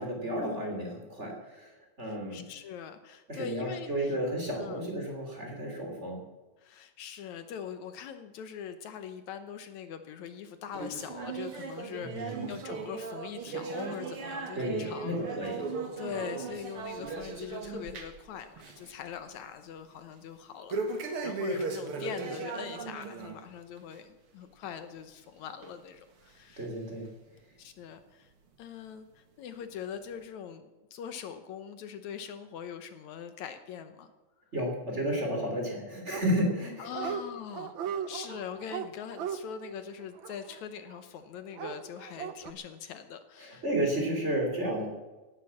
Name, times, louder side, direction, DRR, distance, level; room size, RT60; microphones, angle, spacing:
voice 1, 0.0-2.4 3.3-6.2 12.0-12.5 14.5-15.6 26.6-27.1 34.5-37.1 43.4-44.9, equal, 20° right, 1 dB, 3.5 m, -32 dB
voice 2, 2.1-4.2 4.6-4.8 6.6-15.2 15.4-15.5 16.0-26.7 27.6-28.3 28.6-34.1 36.8-43.6, left 8 dB, 75° left, 9 dB, 2.2 m, -42 dB
sound 1, 10.7-18.3 18.6-18.9 19.3-19.4 20.7-23.4 23.8-24.0 24.6-24.7 25.6-25.7 26.5-26.6, right 4 dB, 50° right, 2.5 m, -37 dB
Dog, 36.1-36.6 36.9-37.2 37.5-41.0 41.5-42.5, right 8 dB, 75° right, 1.1 m, -37 dB
17.5 x 11.5 x 7.2 m, 1.1 s
omnidirectional pair, 3.5 m